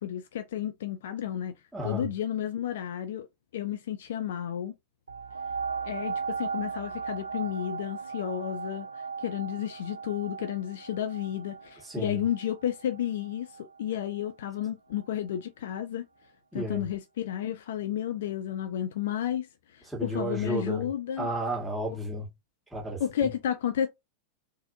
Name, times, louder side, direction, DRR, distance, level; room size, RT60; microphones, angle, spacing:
voice 1, 0.0-1.5 1.8-3.3 3.5-4.7 5.8-8.9 9.2-13.5 13.8-16.1 16.5-19.5 19.7-21.3 23.0-23.9, left 10 dB, 60° left, 0.4 m, -32 dB
voice 2, 1.7-2.1 11.8-12.2 16.5-16.9 19.8-20.9 21.2-22.3 22.7-23.3, right 1 dB, ahead, 2.1 m, -32 dB
sound 1, 5.1-14.3 15.0-15.1, right 5 dB, 75° right, 0.3 m, -37 dB
3.9 x 2.6 x 2.7 m
figure-of-eight pair, 90°, 0 cm